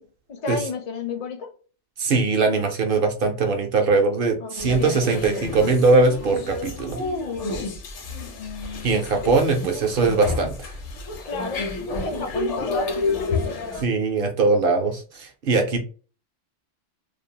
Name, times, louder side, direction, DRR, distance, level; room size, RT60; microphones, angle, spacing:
voice 1, 0.0-1.5 4.4-5.0 6.7-7.7 11.2-11.7 12.0-13.6, left 4 dB, 50° left, 0.6 m, -32 dB
voice 2, 2.0-7.0 8.8-10.7 13.8-15.8, right 3 dB, 60° right, 0.6 m, -21 dB
sound 1, 4.6-13.8, left 3 dB, 75° left, 1.0 m, -30 dB
2.5 x 2.0 x 2.7 m
omnidirectional pair, 1.3 m